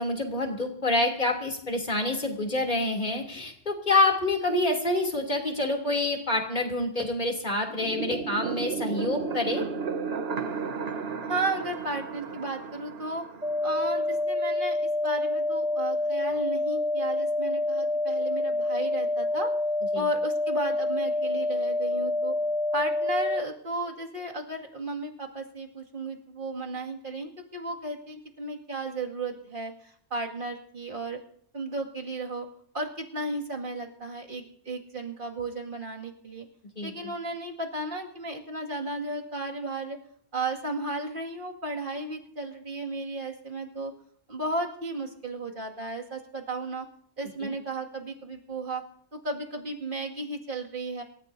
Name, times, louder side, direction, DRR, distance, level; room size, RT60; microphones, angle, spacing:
voice 1, 0.0-9.6 19.9-20.1 36.8-37.1 47.4-47.5, left 2 dB, 40° left, 2 dB, 3.2 m, -27 dB
sound 1, 7.7-14.2, right 5 dB, 65° right, 1.3 m, -34 dB
voice 2, 11.3-13.2 13.6-19.5 19.9-22.3 22.7-31.2 31.5-32.5 32.7-36.5 36.8-40.0 40.3-43.9 44.3-46.9 47.2-48.8 49.1-51.0, right 2 dB, 45° right, 0 dB, 2.4 m, -34 dB
sound 2, 13.4-23.4, left 1 dB, 5° right, 2.2 m, -27 dB
27.0 x 14.5 x 2.7 m, 0.66 s
omnidirectional pair, 1.2 m